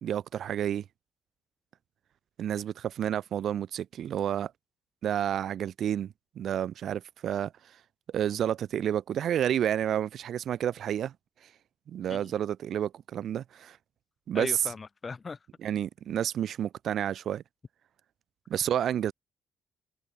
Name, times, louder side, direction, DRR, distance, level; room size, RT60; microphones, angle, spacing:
voice 1, 0.0-0.8 2.4-4.5 5.0-7.5 8.1-11.1 11.9-13.8 14.3-14.5 15.6-17.4 18.5-19.1, right 10 dB, 65° right, 2.7 m, -30 dB
voice 2, 14.3-15.4, left 4 dB, 35° left, 6.9 m, -38 dB
cardioid pair, 90°, 0 cm